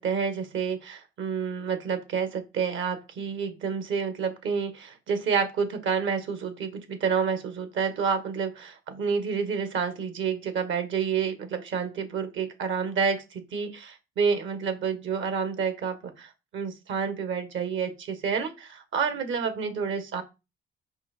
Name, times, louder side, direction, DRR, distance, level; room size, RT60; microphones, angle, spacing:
voice 1, 0.0-20.2, right 6 dB, 75° right, 9 dB, 1.7 m, -29 dB
5.9 x 5.0 x 4.5 m, 0.26 s
cardioid pair, 90°, 20 cm